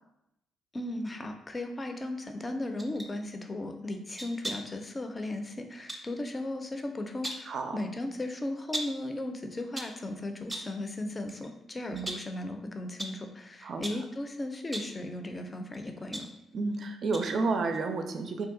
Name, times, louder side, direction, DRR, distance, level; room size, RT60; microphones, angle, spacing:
voice 1, 0.7-16.3, left 1 dB, 30° left, 6 dB, 0.4 m, -36 dB
sound 1, 2.8-3.1 4.2-4.8 5.9-6.1 7.0-7.6 8.7-9.1 9.6-10.0 10.5-10.8 11.3-11.5 12.0-12.4 13.0-13.2 13.8-14.1 14.6-15.0 15.7-16.8 17.1-17.4 17.7-17.8, right 1 dB, 20° right, 0.6 m, -39 dB
voice 2, 7.5-7.8 11.9-12.1 13.6-13.8 16.5-18.5, right 3 dB, 60° right, 5 dB, 0.4 m, -31 dB
2.7 x 2.2 x 3.7 m, 0.84 s
supercardioid pair, 55°, 0 cm